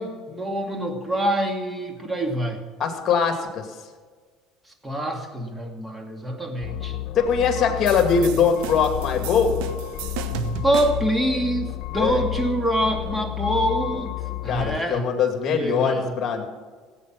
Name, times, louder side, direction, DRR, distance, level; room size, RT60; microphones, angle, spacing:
voice 1, 0.0-2.6 4.8-7.0 10.6-14.1 14.4-15.0 15.5-16.1, right 1 dB, 10° right, 4 dB, 2.3 m, -25 dB
voice 2, 2.8-3.7 7.1-9.6 12.0-12.2 14.5-16.5, left 6 dB, 45° left, 5 dB, 2.5 m, -22 dB
sound 1, 6.6-14.8, left 16 dB, 65° left, 1.1 m, -31 dB
sound 2, 7.9-11.2, right 7 dB, 85° right, 1.0 m, -34 dB
17.0 x 8.4 x 6.1 m, 1.5 s
supercardioid pair, 105°, 0 cm